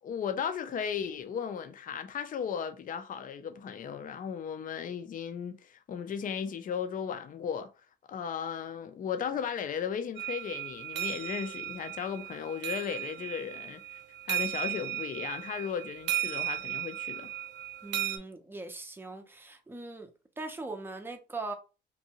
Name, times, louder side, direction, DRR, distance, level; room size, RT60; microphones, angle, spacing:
voice 1, 0.0-7.7 8.1-14.0 14.3-17.3, left 7 dB, 45° left, 0.4 m, -36 dB
sound 1, 10.2-18.2, right 13 dB, 60° right, 0.4 m, -36 dB
voice 2, 17.8-20.1 20.4-21.5, right 3 dB, 10° right, 0.5 m, -40 dB
2.7 x 2.2 x 2.8 m
cardioid pair, 90°, 20 cm